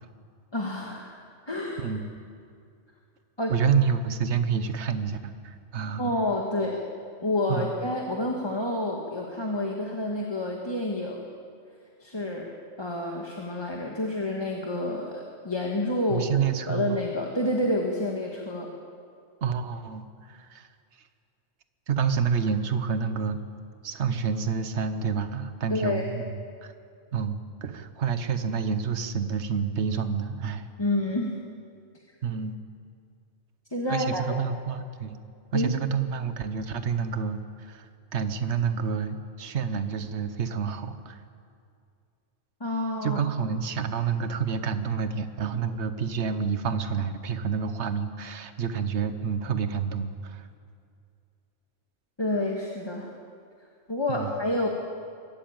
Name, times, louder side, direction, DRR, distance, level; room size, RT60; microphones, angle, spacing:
voice 1, 0.5-1.2 1.5-1.9 3.4-3.5 6.0-6.8 7.2-11.3 12.0-12.5 12.8-16.3 16.6-18.7 25.7-26.1 30.8-31.4 33.7-34.2 35.5-35.7 42.6-43.2 52.2-53.1 53.9-54.7, left 1 dB, 20° left, -1 dB, 1.7 m, -29 dB
voice 2, 3.5-6.1 7.5-7.7 16.1-17.0 19.4-20.7 21.9-23.4 23.8-26.3 26.6-26.7 27.1-30.7 32.2-32.6 33.9-35.2 35.5-41.2 43.0-50.5 54.1-54.3, right 6 dB, 70° right, 10 dB, 1.3 m, -28 dB
23.5 x 13.0 x 8.9 m, 2.3 s
omnidirectional pair, 1.2 m